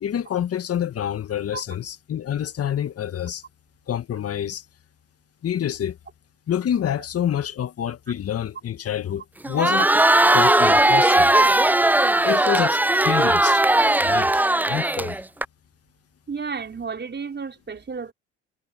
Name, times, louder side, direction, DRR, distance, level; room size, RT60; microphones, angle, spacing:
voice 1, 0.0-3.4 3.9-4.6 5.4-6.0 6.5-9.9 10.3-11.3 12.2-13.6 14.0-15.2, left 10 dB, 45° left, 1.8 m, -27 dB
Crowd, 9.4-15.4, right 1 dB, 5° right, 0.7 m, -18 dB
voice 2, 16.3-18.1, right 5 dB, 35° right, 5.5 m, -32 dB
hypercardioid pair, 55°, 32 cm